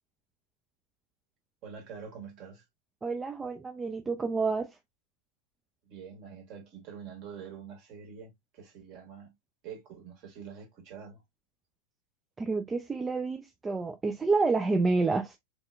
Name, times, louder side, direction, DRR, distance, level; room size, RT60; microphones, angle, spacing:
voice 1, 1.6-2.6 5.8-9.3 9.6-11.2, right 7 dB, 40° right, 1.3 m, -46 dB
voice 2, 3.0-4.8 12.4-15.4, right 3 dB, 15° right, 0.3 m, -29 dB
3.3 x 2.7 x 2.3 m
figure-of-eight pair, 90°, 0 cm